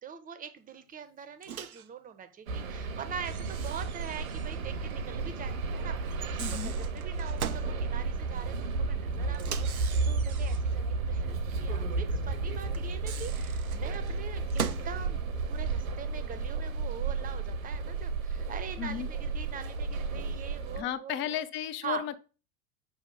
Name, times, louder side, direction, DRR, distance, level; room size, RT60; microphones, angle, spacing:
voice 1, 0.0-21.4 21.8-22.0, right 7 dB, 20° right, 10 dB, 0.8 m, -43 dB
Microwave oven, 1.4-1.9 3.2-4.6 4.9-5.0 6.1-7.7 9.3-10.8 12.7-14.9, right 9 dB, 85° right, 0.5 m, -40 dB
sound 1, 2.5-20.8, right 4 dB, 70° right, 1.0 m, -33 dB
voice 2, 6.4-6.7 18.8-19.1 20.8-22.2, left 10 dB, 30° left, 13 dB, 0.6 m, -34 dB
5.1 x 3.5 x 5.3 m, 0.35 s
figure-of-eight pair, 80°, 42 cm